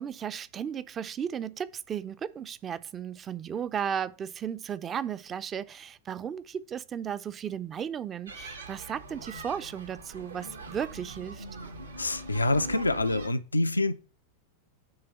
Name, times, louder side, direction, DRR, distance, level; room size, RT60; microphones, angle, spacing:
voice 1, 0.0-11.4, right 8 dB, 25° right, 0.5 m, -35 dB
sound 1, 8.3-13.3, right 2 dB, 75° right, 1.3 m, -42 dB
voice 2, 12.0-14.0, left 2 dB, 80° left, 0.5 m, -26 dB
9.6 x 3.4 x 6.7 m
figure-of-eight pair, 90°, 0 cm